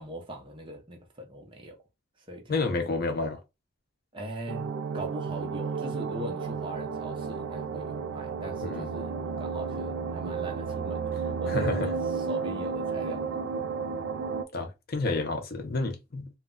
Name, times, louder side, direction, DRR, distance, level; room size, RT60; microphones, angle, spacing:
voice 1, 0.0-1.8 2.3-2.6 4.1-13.4, right 1 dB, 25° right, 0.6 m, -40 dB
voice 2, 2.5-3.4 8.6-9.0 11.5-11.9 14.5-16.4, left 3 dB, 50° left, 0.5 m, -30 dB
sound 1, 4.5-14.4, right 5 dB, 75° right, 0.4 m, -32 dB
2.2 x 2.1 x 3.6 m
head